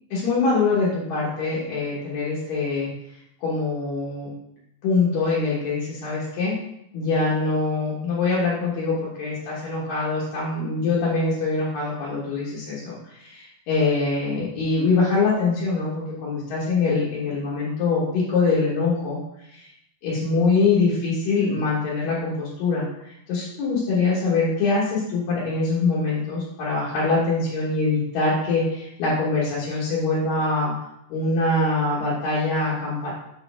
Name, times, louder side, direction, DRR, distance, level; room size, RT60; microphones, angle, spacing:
voice 1, 0.1-2.9 3.4-4.3 4.8-6.6 6.9-19.2 19.5-19.7 20.0-30.7 31.1-33.1, left 3 dB, 80° left, -7 dB, 2.9 m, -24 dB
6.9 x 4.2 x 3.4 m, 0.78 s
omnidirectional pair, 4.0 m